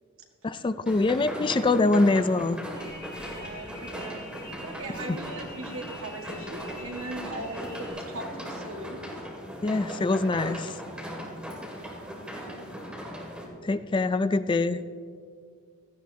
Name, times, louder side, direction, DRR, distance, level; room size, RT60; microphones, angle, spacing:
voice 1, 0.4-2.6 5.1-5.2 9.6-10.7 13.6-14.8, left 3 dB, 25° left, 12 dB, 0.3 m, -24 dB
sound 1, 0.9-13.5, equal, 5° right, 2.2 m, -38 dB
sound 2, 2.7-7.9, left 2 dB, 45° left, 3.1 m, -46 dB
voice 2, 3.3-4.3 4.6-9.0 12.3-12.6, right 2 dB, 85° right, 1 dB, 1.8 m, -39 dB
16.0 x 14.5 x 2.8 m, 2.1 s
head